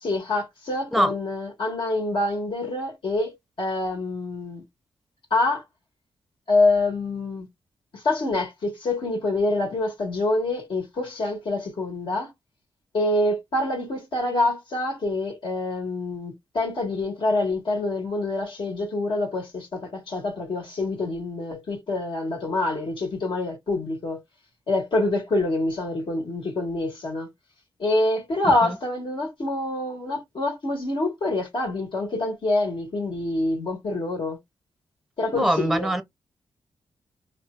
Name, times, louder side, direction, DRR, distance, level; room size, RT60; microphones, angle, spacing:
voice 1, 0.0-4.6 5.3-5.6 6.5-7.5 7.9-12.3 12.9-24.2 24.7-27.3 27.8-34.4 35.2-35.9, left 2 dB, 60° left, 1.6 m, -26 dB
voice 2, 35.3-36.0, right 1 dB, ahead, 0.7 m, -23 dB
3.0 x 2.8 x 2.4 m
cardioid pair, 85°, 10 cm